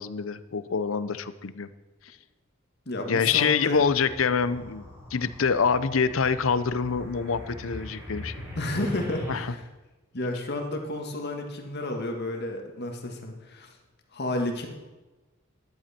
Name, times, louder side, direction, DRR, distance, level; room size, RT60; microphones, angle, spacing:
voice 1, 0.0-1.7 3.1-8.4 9.3-9.5, left 6 dB, 85° left, 14 dB, 0.6 m, -26 dB
voice 2, 2.8-3.8 8.5-9.6 10.1-13.8 14.1-14.7, left 1 dB, 55° left, 3 dB, 1.8 m, -31 dB
sound 1, 3.7-9.4, left 1 dB, 15° right, 4.9 m, -42 dB
14.0 x 10.5 x 4.4 m, 1.1 s
head